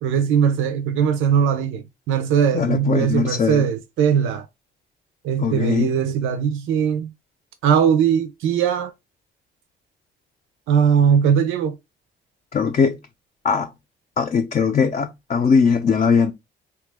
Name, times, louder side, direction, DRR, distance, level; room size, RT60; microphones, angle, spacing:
voice 1, 0.0-4.5 5.2-7.1 7.6-8.9 10.7-11.7, right 8 dB, 85° right, 0.5 m, -20 dB
voice 2, 2.5-3.6 5.4-5.9 12.5-13.0 13.4-13.7 14.2-16.3, left 5 dB, 35° left, 0.5 m, -20 dB
2.9 x 2.3 x 3.3 m
cardioid pair, 90°, 20 cm